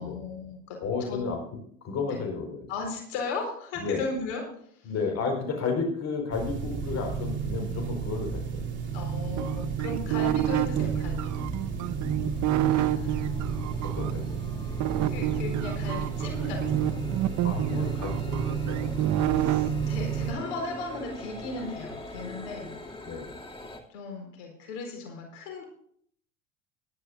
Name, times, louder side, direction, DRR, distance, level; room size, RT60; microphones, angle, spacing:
voice 1, 0.0-0.8 1.1-1.2 2.1-2.2 2.7-4.4 4.7-4.9 8.9-11.5 12.6-13.3 15.1-17.0 19.3-22.7 23.9-25.6, left 3 dB, 70° left, 2 dB, 4.4 m, -36 dB
voice 2, 0.8-1.4 1.8-2.6 3.8-4.0 4.8-8.6 13.8-14.4 17.4-18.9 23.0-23.3, left 4 dB, 40° left, 3 dB, 4.5 m, -32 dB
sound 1, 6.3-20.3, right 6 dB, 30° right, 3.6 m, -32 dB
sound 2, 9.4-14.1 14.8-19.7, right 13 dB, 45° right, 0.9 m, -28 dB
sound 3, 9.5-23.8, left 1 dB, 15° left, 2.5 m, -44 dB
18.5 x 11.5 x 2.5 m, 0.64 s
hypercardioid pair, 85°, 39 cm